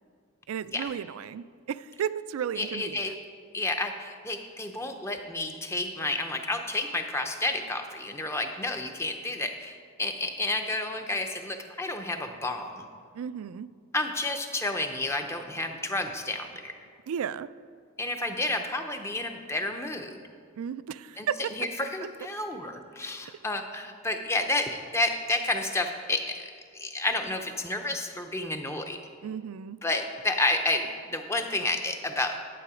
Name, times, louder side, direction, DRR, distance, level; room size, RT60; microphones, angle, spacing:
voice 1, 0.5-3.1 13.1-13.7 17.1-17.5 20.6-21.5 29.2-29.8, right 8 dB, 75° right, 16 dB, 0.3 m, -34 dB
voice 2, 2.6-3.1 3.5-12.9 13.9-16.7 18.0-20.2 21.2-29.0 29.8-32.6, left 2 dB, 10° left, 5 dB, 0.5 m, -30 dB
11.0 x 7.7 x 4.9 m, 2.2 s
head